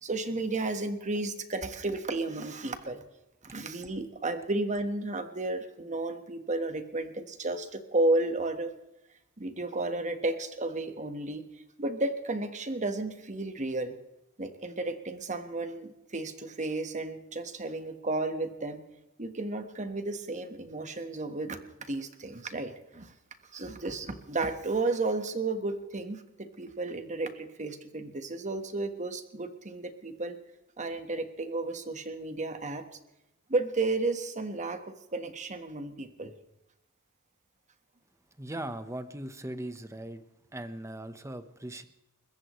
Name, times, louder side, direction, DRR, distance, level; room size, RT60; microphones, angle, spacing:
voice 1, 0.0-3.0 3.4-8.7 9.4-14.0 14.4-18.8 19.2-23.1 23.5-30.4 30.8-32.8 33.5-36.3, right 2 dB, 35° right, 8 dB, 1.4 m, -33 dB
voice 2, 38.4-40.2 40.5-41.8, right 1 dB, 15° right, 10 dB, 1.1 m, -39 dB
30.0 x 14.5 x 3.2 m, 0.89 s
head